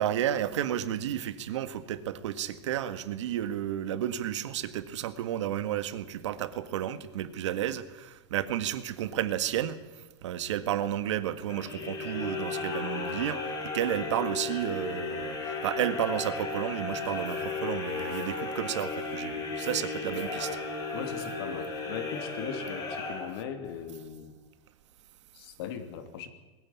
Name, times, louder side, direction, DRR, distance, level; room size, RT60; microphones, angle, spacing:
voice 1, 0.0-20.6, right 11 dB, 90° right, 12 dB, 1.8 m, -32 dB
sound 1, 11.5-23.7, left 3 dB, 25° left, 4.7 m, -35 dB
voice 2, 20.9-24.3 25.3-26.3, left 8 dB, 60° left, 9 dB, 2.8 m, -39 dB
21.0 x 14.5 x 9.6 m, 1.2 s
supercardioid pair, 165°, 15 cm